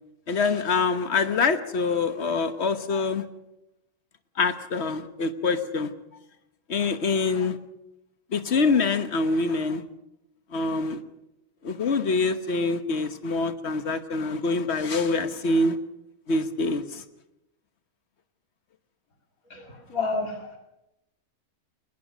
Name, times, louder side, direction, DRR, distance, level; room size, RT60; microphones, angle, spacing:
voice 1, 0.3-3.2 4.4-5.9 6.7-7.6 8.3-9.8 10.5-11.0 11.6-15.8 16.3-17.0, left 3 dB, 55° left, 11 dB, 1.4 m, -25 dB
voice 2, 19.5-20.6, left 3 dB, 90° left, 3 dB, 2.7 m, -30 dB
21.0 x 19.5 x 6.3 m, 0.90 s
omnidirectional pair, 1.4 m